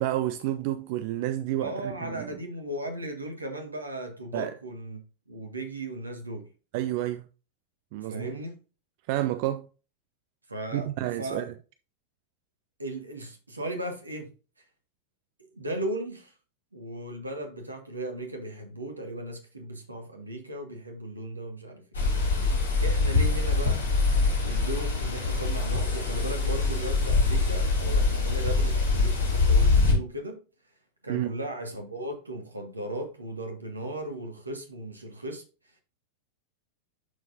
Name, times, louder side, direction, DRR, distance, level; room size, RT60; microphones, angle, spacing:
voice 1, 0.0-2.3 4.3-4.5 6.7-7.2 7.9-8.3 9.1-9.7 10.7-11.4 31.1-31.3, right 14 dB, 45° right, 0.4 m, -30 dB
voice 2, 1.6-5.0 5.3-6.5 8.0-8.6 10.5-11.5 12.8-14.3 15.5-16.3 16.7-21.8 22.8-23.8 24.4-30.4 31.0-35.4, right 1 dB, 80° right, 1.9 m, -36 dB
sound 1, 22.0-29.9, left 3 dB, 75° left, 2.9 m, -24 dB
11.5 x 4.5 x 2.7 m
figure-of-eight pair, 90°, 0 cm